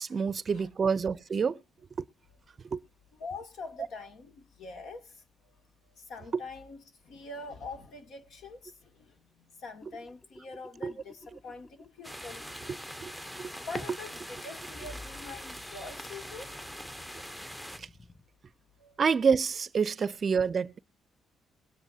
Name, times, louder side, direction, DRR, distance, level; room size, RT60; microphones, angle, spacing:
voice 1, 0.0-1.6 2.0-2.1 2.7-2.8 6.3-6.4 10.8-10.9 13.0-13.5 17.8-17.9 19.0-20.8, right 6 dB, 45° right, 0.5 m, -28 dB
voice 2, 3.2-5.2 6.0-12.4 13.7-16.8 18.8-19.0, left 3 dB, 75° left, 2.4 m, -44 dB
sound 1, 9.8-12.1 12.4-12.5 14.7-15.9 17.7-18.2, left 2 dB, 30° left, 4.6 m, -51 dB
sound 2, 12.0-17.8, equal, 5° left, 0.8 m, -42 dB
21.0 x 9.9 x 2.7 m
cardioid pair, 90°, 0 cm